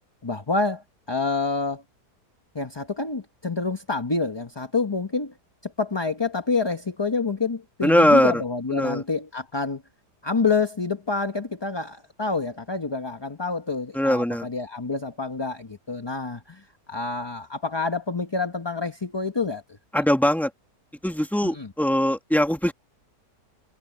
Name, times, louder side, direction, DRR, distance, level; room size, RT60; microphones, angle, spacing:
voice 1, 0.2-1.8 2.5-5.3 5.6-9.8 10.2-19.6 21.6-21.7, left 4 dB, 20° left, 0.8 m, -27 dB
voice 2, 7.8-8.4 8.7-9.0 13.9-14.5 19.9-20.5 21.0-22.7, left 1 dB, ahead, 1.8 m, -21 dB
omnidirectional pair, 1.8 m